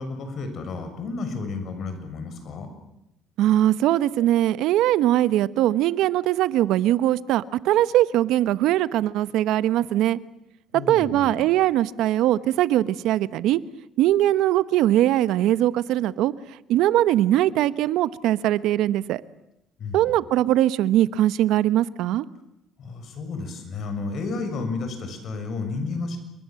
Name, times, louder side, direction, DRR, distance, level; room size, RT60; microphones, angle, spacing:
voice 1, 0.0-2.7 10.7-11.5 19.8-20.1 22.8-26.2, left 3 dB, 60° left, 7 dB, 7.0 m, -32 dB
voice 2, 3.4-10.2 10.9-13.6 14.0-16.3 16.7-19.2 19.9-22.3, right 13 dB, 80° right, 16 dB, 1.0 m, -21 dB
29.0 x 22.0 x 7.7 m, 0.84 s
cardioid pair, 95°, 0 cm